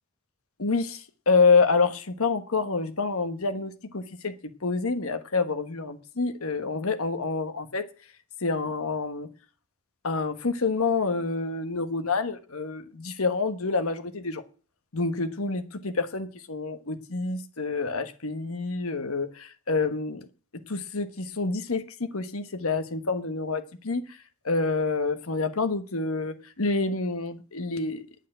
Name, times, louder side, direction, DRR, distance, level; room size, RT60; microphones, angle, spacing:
voice 1, 0.6-4.3 4.6-7.8 8.4-9.3 10.0-14.4 14.9-20.3 20.7-24.2 24.4-28.0, left 4 dB, 90° left, 1.3 m, -27 dB
9.3 x 8.4 x 8.9 m
head